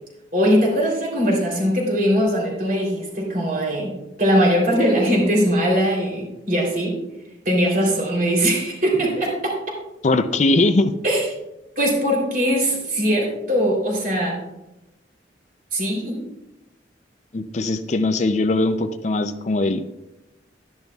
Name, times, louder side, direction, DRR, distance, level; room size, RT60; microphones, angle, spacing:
voice 1, 0.3-7.0 7.4-9.6 11.0-11.3 11.8-14.4 15.7-16.2, equal, 50° right, -1 dB, 3.2 m, -21 dB
voice 2, 10.0-10.9 17.3-19.8, left 2 dB, 40° left, 10 dB, 0.4 m, -20 dB
11.5 x 10.5 x 2.3 m, 0.95 s
head